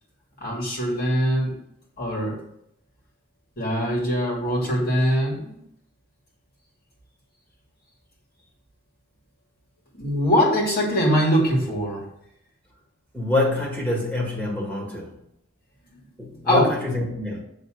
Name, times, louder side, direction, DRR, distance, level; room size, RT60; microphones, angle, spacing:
voice 1, 0.4-1.5 2.0-2.3 3.6-5.5 9.9-12.0 15.8-16.0 16.3-16.7, equal, 50° left, -3 dB, 2.6 m, -22 dB
voice 2, 13.1-15.1 16.2-17.4, left 2 dB, 10° left, -3 dB, 1.9 m, -26 dB
7.5 x 3.9 x 6.4 m, 0.77 s
head